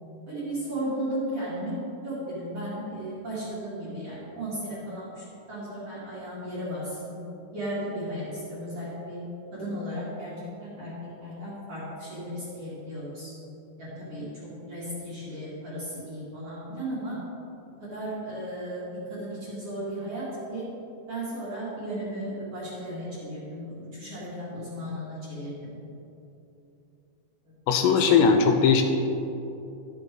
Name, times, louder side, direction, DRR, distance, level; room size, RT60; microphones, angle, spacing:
voice 1, 0.3-1.8 2.0-7.2 7.5-9.2 9.5-10.3 10.6-10.9 11.2-13.3 13.8-17.2 17.8-20.6 21.1-25.7 27.8-28.3, right 1 dB, 45° right, -9 dB, 2.4 m, -35 dB
voice 2, 27.7-28.8, left 6 dB, 80° left, 5 dB, 2.7 m, -19 dB
12.0 x 6.5 x 4.5 m, 2.9 s
omnidirectional pair, 5.2 m